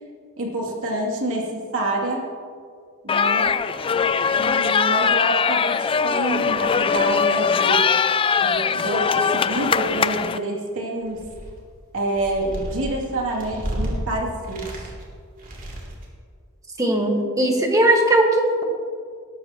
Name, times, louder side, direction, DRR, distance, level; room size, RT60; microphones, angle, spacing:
voice 1, 0.4-2.3 3.0-3.6 4.4-7.9 8.4-11.3 11.9-14.9, right 1 dB, 65° right, -2 dB, 2.8 m, -27 dB
sound 1, 3.1-10.4, left 6 dB, 25° left, 0.3 m, -21 dB
sound 2, 11.0-11.7 12.1-14.0 14.4-15.1 15.4-16.1, equal, 40° right, 2.9 m, -32 dB
voice 2, 16.8-18.6, right 1 dB, 15° right, 1 dB, 1.6 m, -18 dB
21.0 x 12.5 x 3.0 m, 2.1 s
head